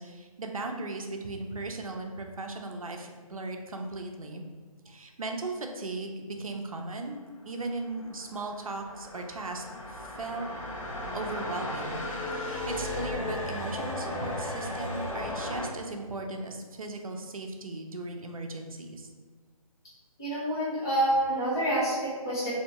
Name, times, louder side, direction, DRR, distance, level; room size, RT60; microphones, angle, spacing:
voice 1, 0.0-4.4 4.9-10.5 11.1-12.0 12.3-19.1, right 2 dB, 65° right, 3 dB, 0.6 m, -37 dB
sound 1, 7.7-15.7, left 1 dB, 60° left, 0.9 m, -35 dB
voice 2, 20.2-22.5, right 1 dB, 5° left, -9 dB, 0.3 m, -27 dB
3.3 x 2.8 x 2.8 m, 1.5 s
figure-of-eight pair, 145°, 19 cm